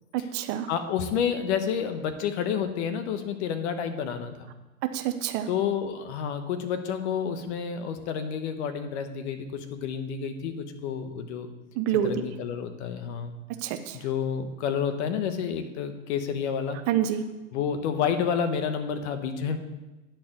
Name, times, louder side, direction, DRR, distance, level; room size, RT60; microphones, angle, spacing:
voice 1, 0.1-0.7 4.9-5.5 11.7-12.1 13.5-14.0 16.9-17.3, right 10 dB, 35° right, 9 dB, 0.6 m, -27 dB
voice 2, 0.7-4.5 5.5-11.5 12.0-13.3 13.9-16.8 17.5-19.6, left 7 dB, 50° left, 8 dB, 1.2 m, -29 dB
10.0 x 4.5 x 7.3 m, 1.1 s
hypercardioid pair, 120°, 41 cm